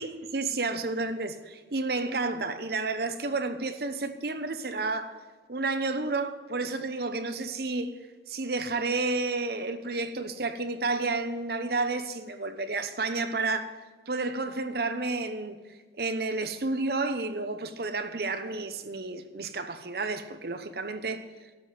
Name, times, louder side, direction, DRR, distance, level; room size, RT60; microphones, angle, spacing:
voice 1, 0.0-5.2 5.5-7.9 8.3-13.8 14.1-15.6 16.0-21.2, right 3 dB, 55° right, 0.8 m, -31 dB
12.0 x 7.7 x 7.6 m
head